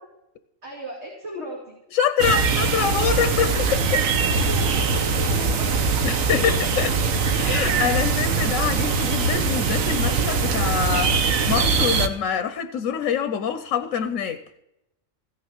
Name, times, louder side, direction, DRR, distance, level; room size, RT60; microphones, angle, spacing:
voice 1, 0.6-1.7 4.4-5.5 5.8-5.9, equal, 55° right, 3.0 m, -36 dB
voice 2, 1.9-4.0 6.0-7.0 7.4-14.4, left 8 dB, 90° left, 1.2 m, -25 dB
sound 1, 2.2-12.1, right 4 dB, 85° right, 1.4 m, -22 dB
15.5 x 6.3 x 8.8 m
omnidirectional pair, 1.4 m